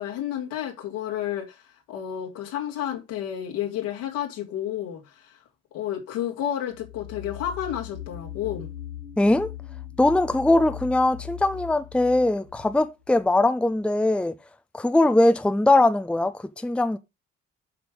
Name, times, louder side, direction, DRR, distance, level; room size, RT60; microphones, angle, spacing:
voice 1, 0.0-5.4 5.7-8.7, left 10 dB, 70° left, 2.5 m, -31 dB
sound 1, 6.7-13.3, left 11 dB, 90° left, 1.0 m, -40 dB
voice 2, 9.2-9.5 10.0-14.3 14.7-17.0, left 2 dB, 5° left, 0.7 m, -21 dB
8.4 x 6.2 x 5.0 m
figure-of-eight pair, 40°, 36 cm